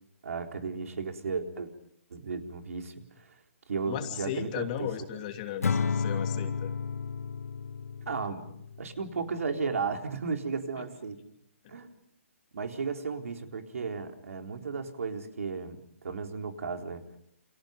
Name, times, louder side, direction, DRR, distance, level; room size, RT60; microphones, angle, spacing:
voice 1, 0.2-1.7 2.1-3.0 3.7-4.9 8.1-11.2 11.7-11.9 12.5-17.0, right 5 dB, 75° right, 4 dB, 4.1 m, -34 dB
voice 2, 3.9-6.7 10.8-10.9, left 10 dB, 30° left, 5 dB, 2.8 m, -36 dB
Acoustic guitar / Strum, 5.6-9.0, left 5 dB, 90° left, 1.1 m, -32 dB
29.5 x 28.0 x 5.3 m, 0.74 s
hypercardioid pair, 160°, 8 cm